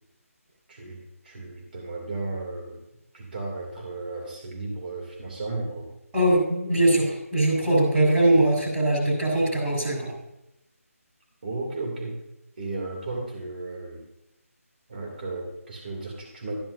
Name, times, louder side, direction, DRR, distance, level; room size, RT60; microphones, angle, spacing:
voice 1, 1.2-2.8 3.1-5.9 11.4-12.2 12.6-14.0 14.9-16.6, right 2 dB, 40° right, 0 dB, 2.6 m, -34 dB
voice 2, 6.1-10.1, right 1 dB, 10° right, -7 dB, 4.0 m, -21 dB
13.5 x 10.5 x 2.6 m, 0.87 s
figure-of-eight pair, 165°, 8 cm